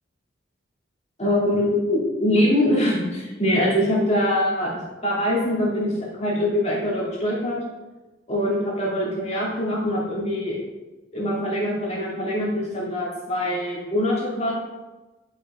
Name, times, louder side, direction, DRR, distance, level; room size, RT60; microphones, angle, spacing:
voice 1, 1.2-7.6 8.3-10.6 11.1-14.5, left 1 dB, 35° left, -5 dB, 2.6 m, -23 dB
11.5 x 5.6 x 4.4 m, 1.1 s
head